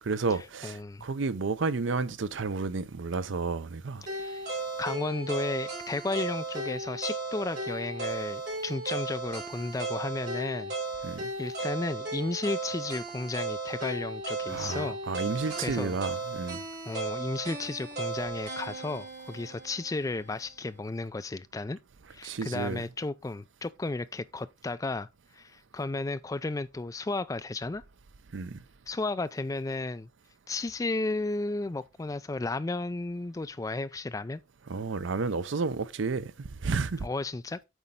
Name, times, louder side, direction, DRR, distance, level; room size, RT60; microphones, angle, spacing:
voice 1, 0.0-4.1 11.0-11.3 14.5-16.6 22.2-22.9 28.3-28.6 34.7-37.1, right 4 dB, 70° right, 0.6 m, -31 dB
voice 2, 0.6-1.1 4.1-4.5 4.8-10.7 11.4-15.0 15.6-16.0 16.8-21.8 22.1-25.1 25.4-27.8 28.9-30.1 30.5-34.4 37.0-37.6, left 2 dB, 15° left, 0.3 m, -33 dB
sound 1, 4.1-20.2, right 3 dB, 55° right, 4.0 m, -36 dB
8.2 x 4.3 x 3.7 m
head